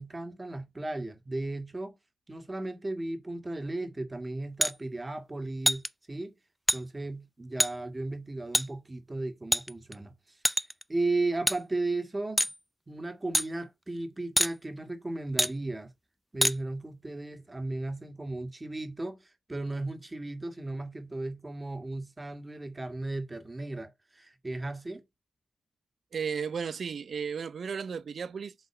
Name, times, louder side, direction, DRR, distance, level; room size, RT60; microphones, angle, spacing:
voice 1, 0.0-2.0 2.3-6.4 6.7-10.1 10.9-12.5 12.9-15.9 16.3-25.0, right 2 dB, 30° right, 2.0 m, -35 dB
sound 1, 4.6-4.7 5.7-5.9 6.7-6.8 7.6-7.7 8.5-8.7 9.5-10.0 10.5-10.8 11.5-11.6 12.4-12.6 13.3-13.5 14.4-14.5 15.4-15.5 16.4-16.6, equal, ahead, 0.5 m, -25 dB
voice 2, 26.1-28.5, right 6 dB, 70° right, 0.6 m, -34 dB
8.1 x 3.6 x 5.9 m
supercardioid pair, 40°, 0 cm